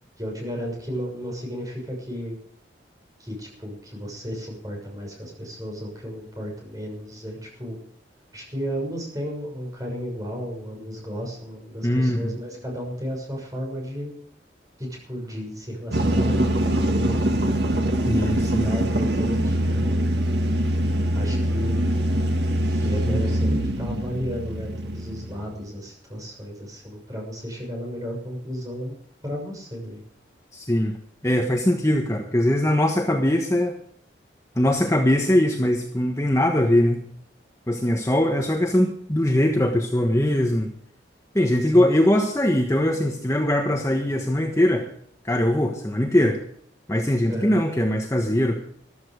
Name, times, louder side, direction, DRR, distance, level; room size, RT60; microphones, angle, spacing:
voice 1, 0.2-2.4 3.2-7.8 8.3-14.1 14.8-17.5 18.3-20.1 21.1-21.9 22.6-28.9 29.2-30.0 41.7-41.9 47.3-47.6, equal, 20° right, -1 dB, 6.6 m, -34 dB
voice 2, 11.8-12.4 18.1-18.7 23.0-23.2 30.5-30.9 31.2-33.7 34.5-37.0 37.7-40.7 41.3-44.9 45.2-46.4 46.9-48.6, left 1 dB, 15° left, 2 dB, 1.3 m, -21 dB
sound 1, 15.9-25.6, right 1 dB, 65° right, 1.9 m, -23 dB
15.0 x 13.0 x 4.9 m, 0.65 s
head